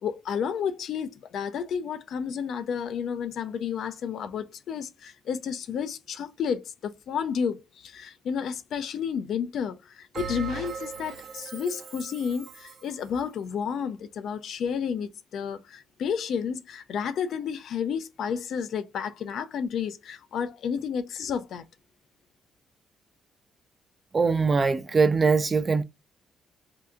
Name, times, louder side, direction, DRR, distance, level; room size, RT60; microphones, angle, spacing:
voice 1, 0.0-21.6, left 7 dB, 70° left, 0.5 m, -31 dB
Bell, 10.1-12.9, right 5 dB, 60° right, 0.8 m, -38 dB
voice 2, 24.1-25.8, right 4 dB, 30° right, 0.4 m, -22 dB
2.8 x 2.3 x 3.6 m
cardioid pair, 90°, 0 cm